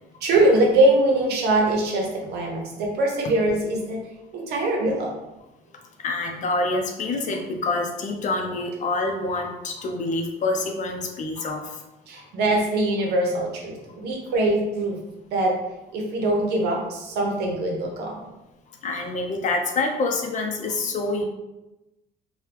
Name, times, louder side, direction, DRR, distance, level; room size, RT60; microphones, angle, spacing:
voice 1, 0.2-4.0 4.3-5.1 12.1-15.0 15.3-15.5 15.9-18.2, right 1 dB, 75° right, 0 dB, 0.8 m, -22 dB
voice 2, 6.0-11.8 18.8-21.2, left 2 dB, 45° left, 3 dB, 0.6 m, -26 dB
3.0 x 2.2 x 3.3 m, 0.98 s
cardioid pair, 110°, 17 cm